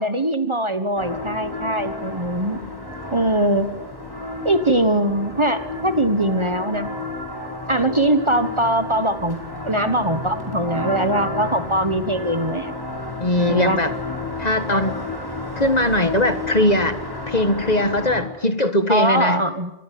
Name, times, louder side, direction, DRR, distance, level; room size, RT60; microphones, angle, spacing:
voice 1, 0.0-2.6 3.1-3.7 4.4-6.9 7.7-9.4 9.6-12.7 13.5-13.8 18.9-19.7, right 1 dB, 25° right, 10 dB, 1.4 m, -21 dB
sound 1, 1.0-18.2, left 2 dB, 20° left, 4.9 m, -31 dB
voice 2, 13.2-13.9 14.4-15.0 15.6-17.0 17.3-19.4, left 1 dB, 35° left, 10 dB, 1.5 m, -20 dB
25.0 x 21.0 x 9.4 m, 0.93 s
omnidirectional pair, 1.2 m